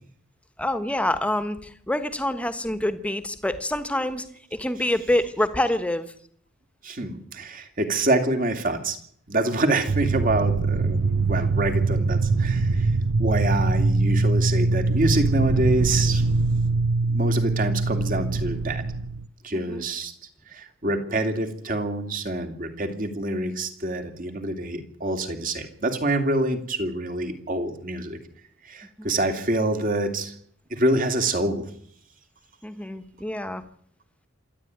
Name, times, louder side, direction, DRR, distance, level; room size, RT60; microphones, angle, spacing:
voice 1, 0.6-6.1 19.5-19.8 29.0-29.1 32.6-33.6, left 1 dB, 5° left, 11 dB, 1.3 m, -27 dB
voice 2, 6.8-9.0 9.3-12.9 13.2-16.2 17.1-18.8 19.4-20.1 20.5-28.2 28.6-30.3 30.7-31.7, right 1 dB, 40° right, 6 dB, 2.6 m, -26 dB
sound 1, 9.9-19.3, right 3 dB, 85° right, 0.8 m, -23 dB
26.5 x 11.5 x 9.4 m, 0.64 s
head